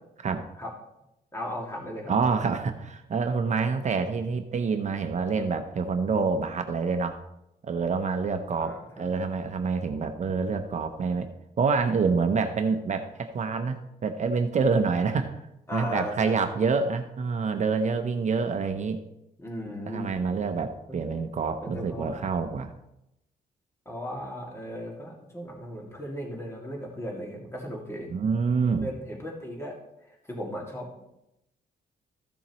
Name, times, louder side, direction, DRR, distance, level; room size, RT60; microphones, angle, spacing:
voice 1, 1.3-2.1 8.6-9.1 15.7-16.4 19.4-20.2 20.9-21.0 21.6-22.3 23.9-28.1 28.8-29.8 30.1-30.9, equal, 15° left, -1 dB, 2.2 m, -36 dB
voice 2, 2.1-7.2 7.6-11.3 11.6-15.3 15.7-19.0 19.9-22.7 28.1-28.9, right 5 dB, 45° right, 7 dB, 0.7 m, -27 dB
14.0 x 7.1 x 3.0 m, 0.87 s
cardioid pair, 110°, 17 cm